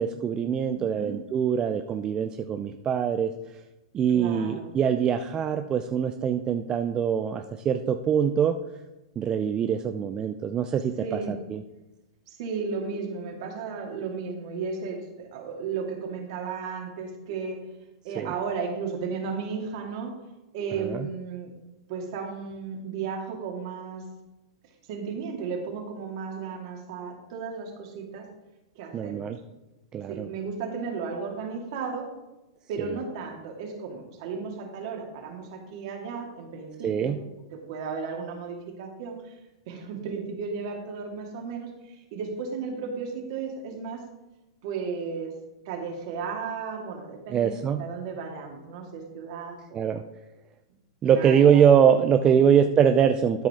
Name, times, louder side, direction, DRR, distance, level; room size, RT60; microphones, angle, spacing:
voice 1, 0.0-3.3 3.9-8.5 9.2-11.6 18.2-18.3 20.8-21.1 28.9-29.4 29.9-30.3 36.8-37.2 47.3-47.9 49.7-50.0 51.0-53.5, right 8 dB, 25° right, 7 dB, 0.4 m, -23 dB
voice 2, 0.7-1.2 4.1-4.7 11.0-11.4 12.3-17.6 18.0-20.1 20.5-21.5 21.9-24.1 24.9-28.3 28.8-29.3 30.1-32.1 32.7-37.2 37.5-39.4 39.7-44.0 44.6-45.3 45.7-50.0 51.0-51.8, right 5 dB, 55° right, 1 dB, 2.2 m, -34 dB
12.5 x 4.9 x 3.6 m, 1.0 s
hypercardioid pair, 115°, 3 cm